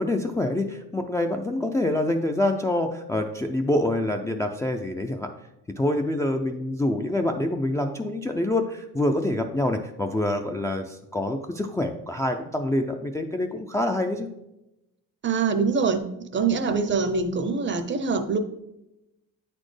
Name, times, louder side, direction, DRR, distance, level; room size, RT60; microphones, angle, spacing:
voice 1, 0.0-5.3 5.8-14.3, left 1 dB, 10° left, 3 dB, 0.3 m, -26 dB
voice 2, 15.2-16.0 16.3-18.4, right 5 dB, 35° right, 9 dB, 0.6 m, -24 dB
8.6 x 4.2 x 3.2 m, 0.90 s
cardioid pair, 120°, 33 cm